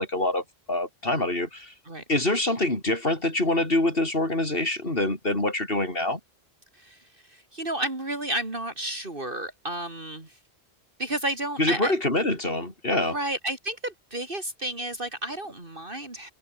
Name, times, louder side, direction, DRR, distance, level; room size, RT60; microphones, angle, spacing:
voice 1, 0.0-1.7 2.1-6.2 11.6-13.2, left 1 dB, 60° left, 5.1 m, -25 dB
voice 2, 7.3-10.4 11.0-11.9 12.9-16.3, right 1 dB, 55° right, 4.2 m, -32 dB
omnidirectional pair, 1.1 m